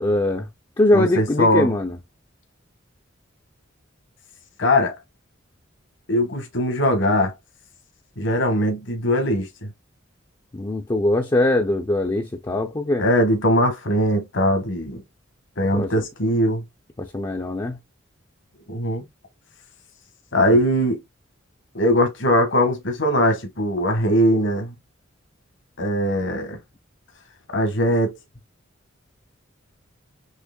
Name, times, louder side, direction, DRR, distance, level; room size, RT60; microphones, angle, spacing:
voice 1, 0.0-0.5 0.8-2.0 10.5-13.0 15.7-15.9 17.0-17.8, left 1 dB, 20° left, 0.5 m, -21 dB
voice 2, 0.9-1.7 4.6-4.9 6.1-7.3 8.2-9.5 13.0-15.0 15.6-16.6 18.7-19.0 20.3-21.0 21.7-24.7 25.8-26.6 27.5-28.2, equal, 65° left, 1.3 m, -20 dB
6.4 x 2.9 x 2.2 m
head